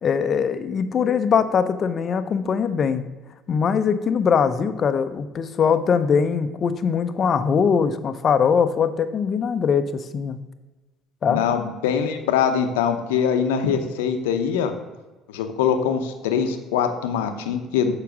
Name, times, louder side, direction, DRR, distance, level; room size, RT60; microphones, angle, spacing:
voice 1, 0.0-3.1 3.5-10.4 11.2-11.4, left 6 dB, 45° left, 11 dB, 0.7 m, -21 dB
voice 2, 11.3-14.7 15.3-17.9, left 7 dB, 85° left, 7 dB, 0.8 m, -23 dB
7.0 x 4.9 x 6.1 m, 1.2 s
hypercardioid pair, 60°, 0 cm